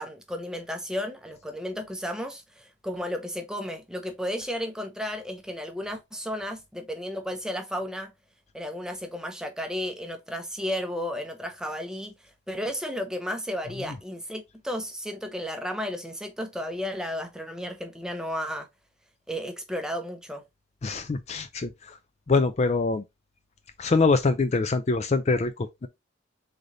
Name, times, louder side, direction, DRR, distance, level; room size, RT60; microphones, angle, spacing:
voice 1, 0.0-8.1 8.5-12.1 12.5-18.7 19.3-20.4, equal, 5° right, 0.7 m, -33 dB
voice 2, 20.8-22.0 22.3-23.0 23.8-25.9, left 3 dB, 35° left, 0.4 m, -24 dB
3.9 x 3.3 x 3.9 m
head